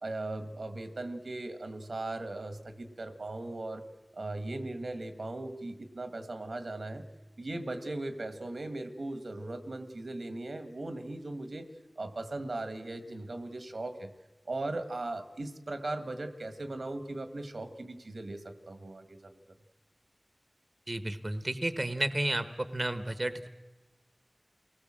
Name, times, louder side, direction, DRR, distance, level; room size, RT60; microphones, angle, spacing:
voice 1, 0.0-3.9 4.1-7.0 7.4-11.6 11.9-14.1 14.4-19.3, right 2 dB, 85° right, 8 dB, 1.8 m, -38 dB
voice 2, 20.9-22.5 22.7-23.5, right 1 dB, 35° right, 10 dB, 1.1 m, -32 dB
28.5 x 19.0 x 7.6 m, 1.1 s
wide cardioid pair, 65°, 0 cm